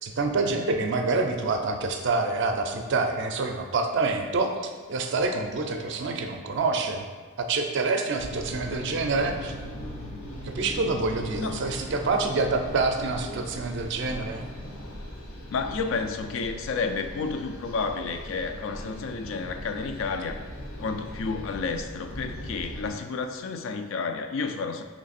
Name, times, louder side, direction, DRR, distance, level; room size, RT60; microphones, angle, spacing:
voice 1, 0.0-7.1 7.4-9.5 10.4-14.5, right 3 dB, 55° right, 4 dB, 0.4 m, -27 dB
sound 1, 8.2-22.9, left 1 dB, 90° left, 0.8 m, -39 dB
voice 2, 15.5-20.4 20.8-24.8, left 4 dB, 65° left, 7 dB, 0.3 m, -31 dB
3.3 x 3.0 x 4.1 m, 1.5 s
head